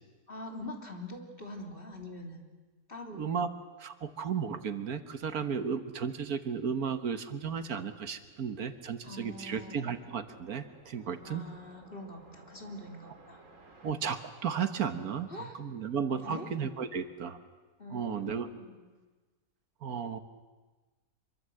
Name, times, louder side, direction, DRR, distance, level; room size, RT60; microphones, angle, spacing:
voice 1, 0.3-2.5 2.9-3.3 9.0-10.0 11.2-13.4 15.3-15.6 16.1-16.5 17.8-18.8, left 1 dB, 35° left, 2 dB, 3.4 m, -44 dB
voice 2, 3.1-3.5 3.8-11.4 13.8-17.4 17.9-18.5 19.8-20.2, right 7 dB, 75° right, 9 dB, 1.7 m, -34 dB
sound 1, 7.5-13.9, right 3 dB, 55° right, 3.0 m, -58 dB
26.0 x 23.5 x 7.8 m, 1.3 s
omnidirectional pair, 1.6 m